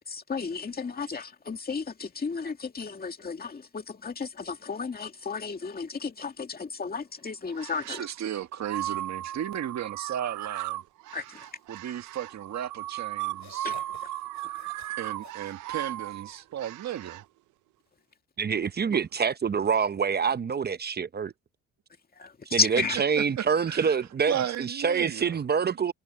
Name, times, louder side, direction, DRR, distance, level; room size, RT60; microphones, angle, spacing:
voice 1, 0.0-8.0 11.1-11.5 13.6-14.1 14.4-14.7 22.2-23.0, left 5 dB, 30° left, 2.2 m, -33 dB
sound 1, 7.5-8.1 8.6-17.2, right 14 dB, 90° right, 0.8 m, -36 dB
voice 2, 7.9-10.8 11.7-13.7 15.0-17.2 18.9-19.0 23.2-24.0 24.3-25.4, right 10 dB, 65° right, 1.8 m, -35 dB
sound 2, 12.7-12.8 13.3-16.2, left 10 dB, 70° left, 6.0 m, -53 dB
voice 3, 18.4-21.3 22.5-25.9, right 6 dB, 35° right, 0.7 m, -26 dB
cardioid pair, 90°, 30 cm